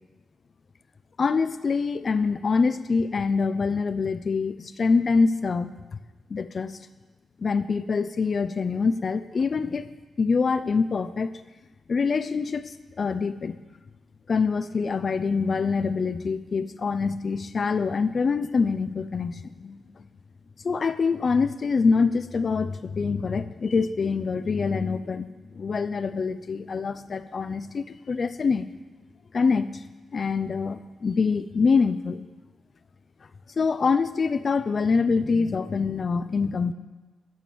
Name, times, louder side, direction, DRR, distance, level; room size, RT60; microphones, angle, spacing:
voice 1, 1.2-5.7 6.3-6.8 7.4-11.3 11.9-13.6 14.3-19.8 20.6-25.3 25.6-28.7 29.3-29.8 30.1-32.2 33.6-36.7, left 4 dB, 45° left, 12 dB, 0.6 m, -25 dB
12.0 x 8.0 x 7.0 m, 1.2 s
cardioid pair, 100°, 0 cm